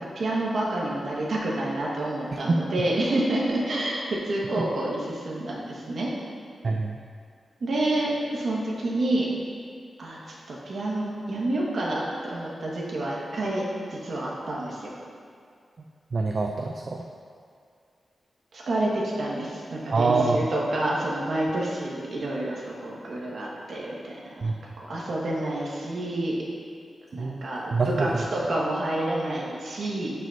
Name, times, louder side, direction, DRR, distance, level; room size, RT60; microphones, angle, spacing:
voice 1, 0.0-6.1 7.6-9.3 10.0-14.9 18.5-26.4 27.1-30.1, right 1 dB, 60° right, -5 dB, 1.7 m, -28 dB
voice 2, 6.6-7.0 16.1-17.0 19.9-20.4 24.4-24.5 27.2-27.4 27.7-28.2, right 3 dB, 45° right, 1 dB, 0.4 m, -25 dB
12.0 x 6.2 x 2.8 m, 2.3 s
wide cardioid pair, 145°, 0 cm